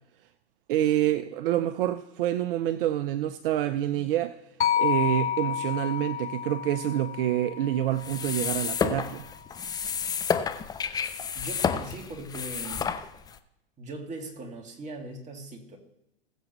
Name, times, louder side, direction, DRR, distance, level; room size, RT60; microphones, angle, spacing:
voice 1, 0.7-4.4 4.8-9.2, right 12 dB, 55° right, 12 dB, 0.7 m, -27 dB
sound 1, 4.6-8.8, left 9 dB, 90° left, 0.8 m, -30 dB
sound 2, 8.0-13.4, left 7 dB, 10° left, 0.5 m, -30 dB
voice 2, 11.3-12.9 13.8-15.8, right 2 dB, 20° right, 1 dB, 2.4 m, -40 dB
21.0 x 7.2 x 3.1 m, 0.86 s
hypercardioid pair, 120°, 33 cm